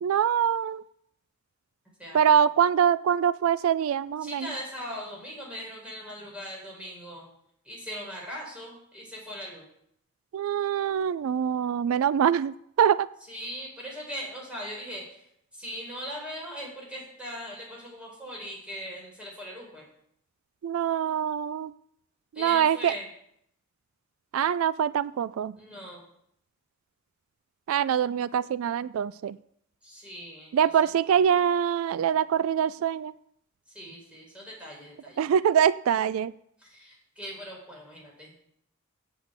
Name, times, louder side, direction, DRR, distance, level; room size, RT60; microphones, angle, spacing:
voice 1, 0.0-0.8 2.1-4.5 10.3-13.1 20.6-21.7 22.4-23.0 24.3-25.5 27.7-29.4 30.5-33.1 35.2-36.3, right 8 dB, 85° right, 18 dB, 0.3 m, -24 dB
voice 2, 4.2-7.2 7.6-9.6 13.3-15.0 15.5-19.9 22.3-23.1 25.6-26.0 29.8-30.5 33.7-35.3 36.6-38.3, equal, 5° right, -4 dB, 4.4 m, -40 dB
8.1 x 7.8 x 8.0 m, 0.72 s
head